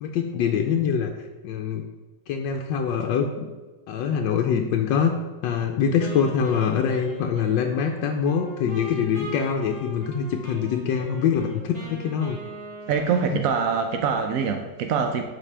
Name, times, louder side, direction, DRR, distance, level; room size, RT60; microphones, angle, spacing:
voice 1, 0.0-1.1 1.4-1.8 2.3-3.4 3.9-5.1 5.4-12.4 13.3-13.4, left 7 dB, 80° left, 3 dB, 1.3 m, -24 dB
Wind instrument woodwind instrument, 6.0-13.9, equal, 20° right, 2.2 m, -40 dB
voice 2, 12.9-15.2, right 6 dB, 80° right, 5 dB, 0.7 m, -24 dB
12.0 x 4.3 x 3.3 m, 1.2 s
omnidirectional pair, 2.0 m